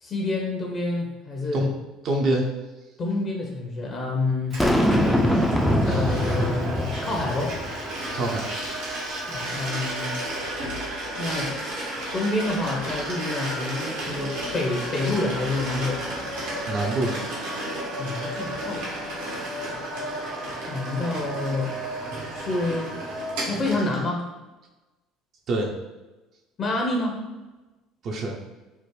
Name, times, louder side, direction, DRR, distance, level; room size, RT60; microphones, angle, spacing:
voice 1, 0.0-1.7 3.0-4.6 5.8-7.5 9.2-10.2 11.1-16.0 18.0-19.0 20.7-21.7 22.3-23.0 23.4-24.3 26.6-27.3, left 2 dB, 40° left, 0 dB, 0.7 m, -28 dB
voice 2, 2.0-2.5 5.8-6.1 8.1-8.5 16.7-17.2 25.5-25.7 28.0-28.4, right 2 dB, 55° right, 0 dB, 0.6 m, -25 dB
sound 1, 4.5-24.0, right 1 dB, 75° right, 1.0 m, -32 dB
Boom, 4.6-7.9, equal, ahead, 0.4 m, -23 dB
3.5 x 2.1 x 3.1 m, 1.1 s
hypercardioid pair, 70°, 0 cm